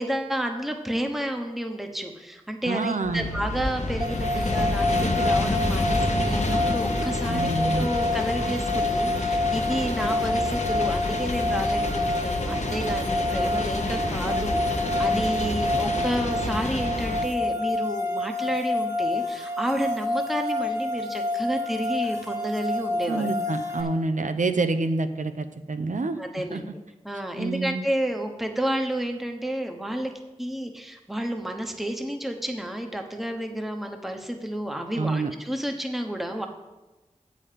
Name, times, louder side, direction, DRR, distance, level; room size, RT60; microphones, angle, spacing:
voice 1, 0.0-23.3 26.2-26.7 27.0-30.1 30.4-36.5, right 1 dB, ahead, 3 dB, 1.0 m, -31 dB
voice 2, 2.6-3.3 7.3-7.9 23.1-26.2 26.5-26.6 27.4-27.9 35.0-35.3, right 3 dB, 75° right, 9 dB, 0.6 m, -27 dB
sound 1, 3.0-17.3, left 1 dB, 60° left, 0.9 m, -29 dB
sound 2, 4.0-23.8, left 2 dB, 20° right, 1.2 m, -28 dB
8.3 x 5.1 x 7.5 m, 1.1 s
wide cardioid pair, 45°, 13 cm